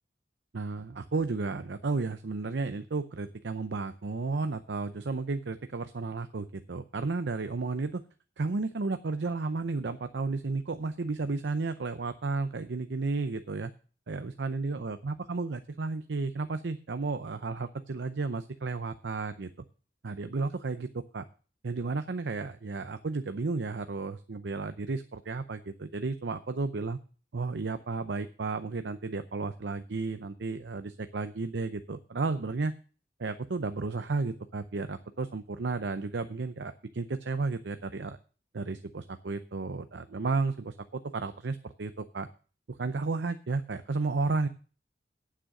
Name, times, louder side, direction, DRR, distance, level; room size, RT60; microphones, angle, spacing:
voice 1, 0.5-8.0 8.4-13.7 14.1-19.5 20.0-21.2 21.6-27.0 27.3-32.7 33.2-38.2 38.5-42.3 42.7-44.5, right 3 dB, 85° right, 10 dB, 0.6 m, -33 dB
8.9 x 7.6 x 6.4 m, 0.38 s
head